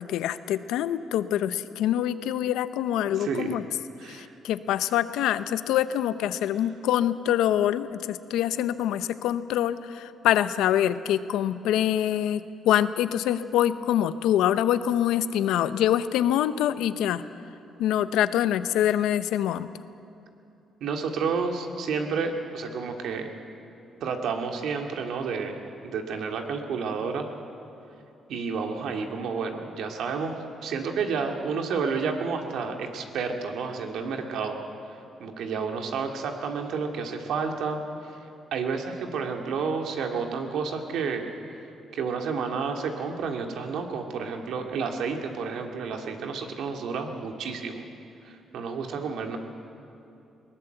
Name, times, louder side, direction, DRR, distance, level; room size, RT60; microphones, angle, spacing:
voice 1, 0.0-3.6 4.0-17.2 17.8-19.7, left 11 dB, 90° left, 13 dB, 0.8 m, -25 dB
voice 2, 3.2-3.5 4.0-4.3 20.8-23.3 24.0-25.6 25.8-27.3 28.3-34.6 35.2-37.8 38.5-41.3 41.9-47.8 48.2-49.4, right 5 dB, 75° right, 3 dB, 2.4 m, -30 dB
21.5 x 19.0 x 8.0 m, 2.7 s
cardioid pair, 90°, 0 cm